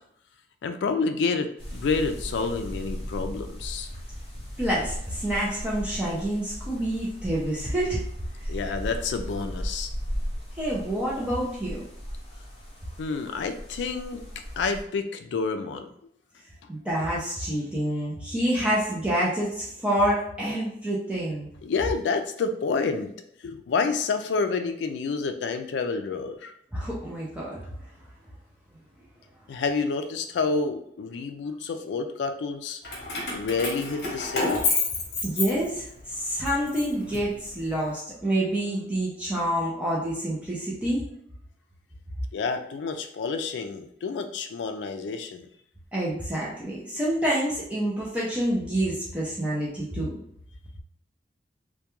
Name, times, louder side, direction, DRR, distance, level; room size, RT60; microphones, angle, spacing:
voice 1, 0.6-3.9 8.5-9.9 13.0-14.2 14.6-15.9 21.6-23.1 23.4-26.5 29.5-32.8 33.3-34.6 42.3-45.5, left 4 dB, 80° left, 8 dB, 0.3 m, -29 dB
sound 1, 1.6-14.8, equal, 30° left, 0.8 m, -37 dB
voice 2, 4.6-8.0 10.6-11.8 16.7-21.5 26.7-27.8 35.2-41.0 45.9-50.2, right 1 dB, 5° right, -6 dB, 0.4 m, -27 dB
Keys jangling, 32.8-36.0 36.5-37.7, left 3 dB, 65° left, 0.8 m, -29 dB
2.2 x 2.2 x 2.9 m, 0.69 s
head